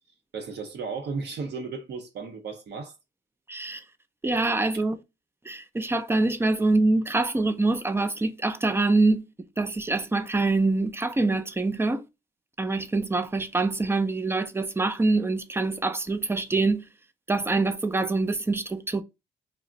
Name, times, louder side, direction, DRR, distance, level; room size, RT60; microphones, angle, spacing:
voice 1, 0.3-2.9, right 4 dB, 60° right, 0.7 m, -34 dB
voice 2, 3.5-3.8 4.2-5.0 5.5-9.2 9.6-12.0 12.6-16.9 17.3-19.0, right 3 dB, 10° right, 0.4 m, -25 dB
2.4 x 2.1 x 3.7 m
cardioid pair, 90°, 20 cm